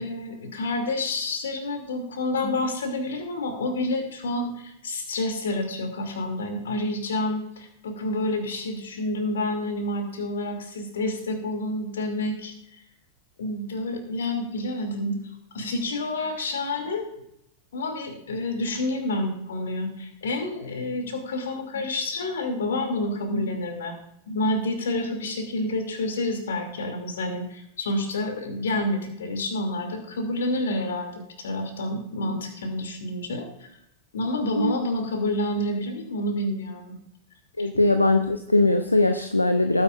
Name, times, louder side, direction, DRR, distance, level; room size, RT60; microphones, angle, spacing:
voice 1, 0.0-12.5 13.4-17.1 17.7-24.0 24.3-33.7 34.1-36.9 37.6-37.7, left 1 dB, 65° left, 4 dB, 2.7 m, -29 dB
voice 2, 37.6-39.8, left 2 dB, 85° left, 8 dB, 0.6 m, -21 dB
18.5 x 9.7 x 2.5 m, 0.78 s
figure-of-eight pair, 90°, 0 cm